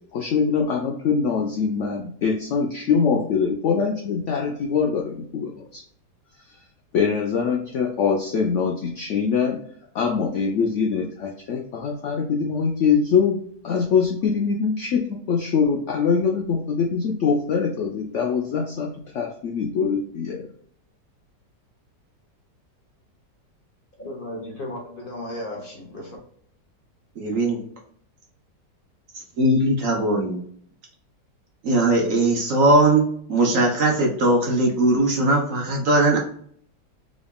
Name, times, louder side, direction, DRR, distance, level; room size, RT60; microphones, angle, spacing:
voice 1, 0.1-5.8 6.5-6.6 6.9-9.6 9.9-13.4 13.6-20.5, left 6 dB, 80° left, 0.6 m, -23 dB
voice 2, 23.9-26.2, left 1 dB, 35° left, 1.0 m, -35 dB
voice 3, 27.2-27.6 29.4-30.4 31.6-36.2, right 2 dB, 55° right, 1.1 m, -19 dB
3.7 x 3.4 x 2.3 m
omnidirectional pair, 1.9 m